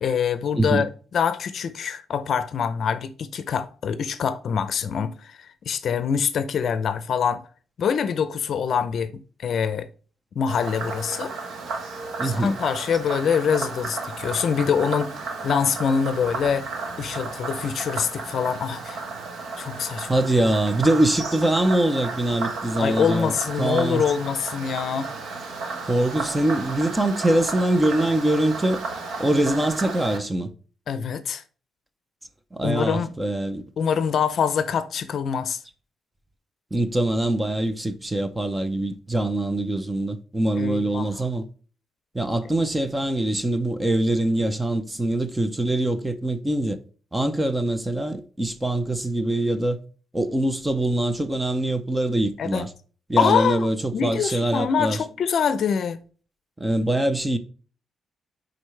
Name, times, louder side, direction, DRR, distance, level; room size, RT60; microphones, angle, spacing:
voice 1, 0.0-7.4 7.8-9.1 9.4-9.9 10.3-11.3 12.2-15.1 15.4-16.7 17.0-19.0 19.6-20.1 22.8-25.1 30.9-31.4 32.6-33.1 33.8-35.6 40.6-41.1 52.4-52.7 53.2-53.7 53.9-56.0, left 7 dB, 55° left, 0.6 m, -24 dB
Frog, 10.5-30.2, right 4 dB, 85° right, 1.2 m, -33 dB
voice 2, 12.2-12.5 20.1-24.0 25.9-28.8 29.2-30.5 32.5-33.6 36.7-41.5 42.1-46.8 47.1-49.8 50.1-52.7 53.1-55.0 56.6-57.4, right 1 dB, 10° right, 0.6 m, -23 dB
10.0 x 3.9 x 3.2 m
wide cardioid pair, 160°, 0 cm